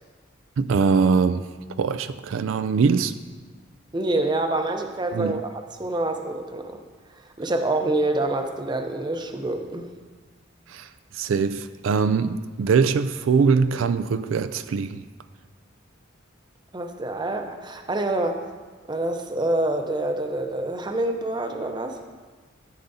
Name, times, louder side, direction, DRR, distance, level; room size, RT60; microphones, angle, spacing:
voice 1, 0.6-1.4 1.8-3.1 5.1-5.4 10.7-10.9 11.1-15.1, right 5 dB, 80° right, 11 dB, 0.4 m, -22 dB
voice 2, 3.9-6.8 7.4-9.9 16.7-18.4 18.9-22.0, right 2 dB, 20° right, 5 dB, 0.7 m, -26 dB
13.5 x 8.1 x 2.7 m, 1.4 s
head